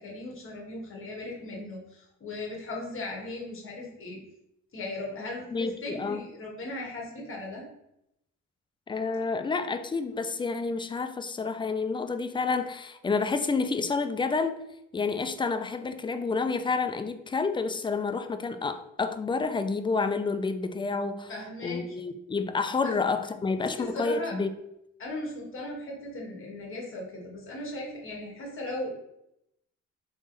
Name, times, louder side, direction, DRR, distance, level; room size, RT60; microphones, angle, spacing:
voice 1, 0.0-4.2 4.7-7.6 21.3-22.0 22.8-22.9 23.6-24.3 25.0-28.9, left 2 dB, 45° left, -2 dB, 1.6 m, -37 dB
voice 2, 5.5-6.2 8.9-14.6 14.9-21.3 21.6-24.5, left 4 dB, 15° left, 9 dB, 0.3 m, -29 dB
3.5 x 3.4 x 3.9 m, 0.82 s
cardioid pair, 90°, 30 cm